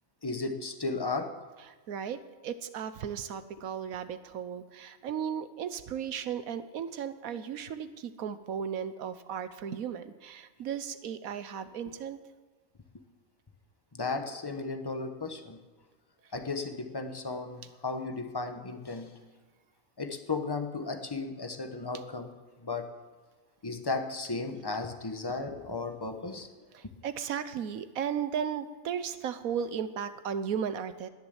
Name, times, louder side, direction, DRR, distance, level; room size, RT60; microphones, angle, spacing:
voice 1, 0.2-1.3 13.9-15.6 16.3-19.3 20.0-22.3 22.6-22.9 23.6-26.5, left 3 dB, 20° left, 6 dB, 0.9 m, -35 dB
voice 2, 1.9-12.2 26.7-31.1, right 8 dB, 80° right, 12 dB, 1.3 m, -35 dB
20.0 x 7.2 x 8.0 m, 1.3 s
omnidirectional pair, 1.5 m